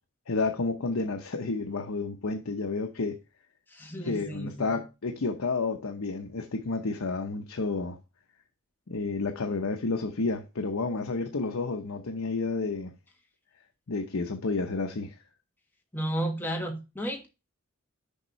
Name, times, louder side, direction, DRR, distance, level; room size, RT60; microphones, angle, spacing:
voice 1, 0.3-3.2 4.0-8.0 8.9-12.9 13.9-15.2, left 3 dB, 80° left, 0.8 m, -30 dB
voice 2, 3.7-4.7 15.9-17.3, right 1 dB, 10° left, 1.4 m, -33 dB
6.7 x 5.4 x 3.1 m
head